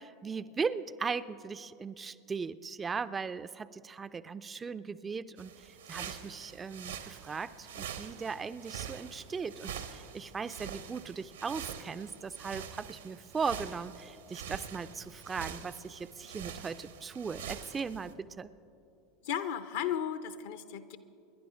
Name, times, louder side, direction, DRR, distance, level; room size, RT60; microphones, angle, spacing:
voice 1, 0.0-18.5, right 5 dB, 20° right, 13 dB, 0.4 m, -38 dB
sound 1, 5.4-18.1, right 8 dB, 70° right, 0.9 m, -45 dB
voice 2, 19.2-21.0, left 9 dB, 60° left, 12 dB, 0.7 m, -35 dB
27.0 x 11.0 x 3.9 m, 2.7 s
figure-of-eight pair, 80°, 0 cm